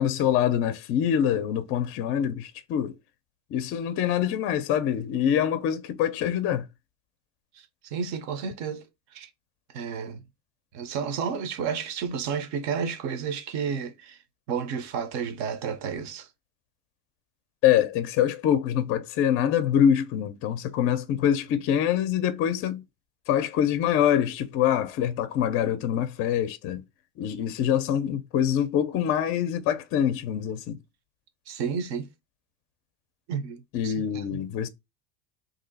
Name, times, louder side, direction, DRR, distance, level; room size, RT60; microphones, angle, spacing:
voice 1, 0.0-2.9 3.5-6.7 17.6-22.8 23.3-26.8 27.2-30.8 33.7-34.7, left 9 dB, 40° left, 0.5 m, -25 dB
voice 2, 7.5-8.9 9.1-9.3 9.7-10.2 10.7-14.2 14.5-16.3 31.5-32.1 33.3-34.4, right 6 dB, 50° right, 0.7 m, -31 dB
2.9 x 2.7 x 3.9 m
supercardioid pair, 145°, 35 cm